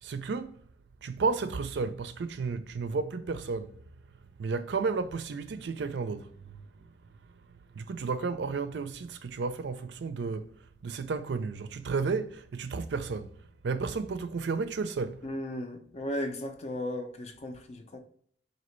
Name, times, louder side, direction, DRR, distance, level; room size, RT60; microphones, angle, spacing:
voice 1, 0.0-0.6 1.0-3.7 4.4-6.7 7.8-10.5 10.8-13.3 13.6-15.2, right 4 dB, 75° right, 0.4 m, -32 dB
voice 2, 15.2-18.0, left 1 dB, 35° left, 0.4 m, -36 dB
4.1 x 2.8 x 3.0 m
head